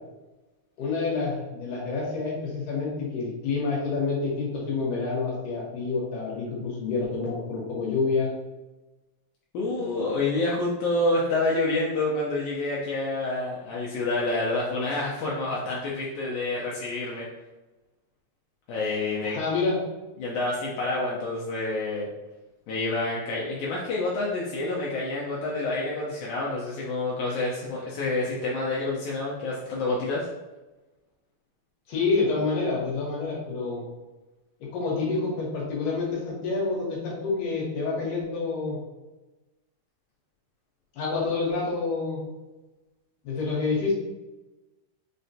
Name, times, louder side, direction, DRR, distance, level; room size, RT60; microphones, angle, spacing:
voice 1, 0.8-8.3 9.7-10.0 19.2-19.8 31.9-33.8 34.7-38.8 40.9-42.2 43.2-43.9, left 4 dB, 70° left, -4 dB, 2.3 m, -28 dB
voice 2, 9.5-17.3 18.7-19.4 20.2-22.1 22.7-30.3, left 2 dB, 90° left, -5 dB, 1.7 m, -28 dB
5.5 x 2.1 x 2.7 m, 1.1 s
omnidirectional pair, 4.1 m